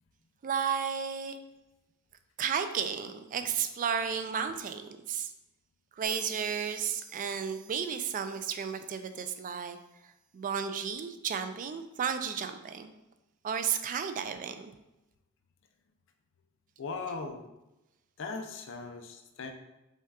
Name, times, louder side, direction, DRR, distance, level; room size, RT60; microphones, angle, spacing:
voice 1, 0.4-1.4 2.4-5.3 6.0-9.8 10.3-12.9 13.4-14.7, right 7 dB, 40° right, 9 dB, 0.3 m, -33 dB
sound 1, 6.0-9.6, right 5 dB, 80° right, 0.7 m, -51 dB
voice 2, 16.8-17.5 18.2-19.5, left 4 dB, 60° left, 6 dB, 0.5 m, -39 dB
5.5 x 2.3 x 3.5 m, 0.95 s
head